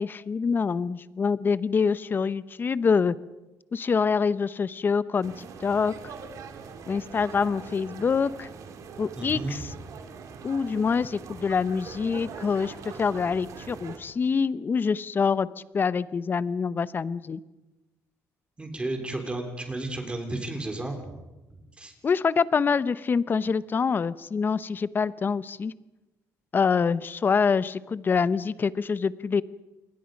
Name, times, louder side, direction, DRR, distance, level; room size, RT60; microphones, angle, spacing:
voice 1, 0.0-3.2 3.7-6.1 6.9-8.5 9.0-9.7 10.4-15.5 15.7-17.4 22.0-25.7 26.5-29.4, left 5 dB, 35° left, 16 dB, 0.8 m, -25 dB
sound 1, 5.2-14.0, right 6 dB, 65° right, 2.5 m, -42 dB
voice 2, 9.2-9.7 18.6-21.2 21.5-21.9, right 2 dB, 20° right, 5 dB, 3.4 m, -33 dB
27.5 x 22.0 x 5.3 m, 1.1 s
cardioid pair, 110°, 6 cm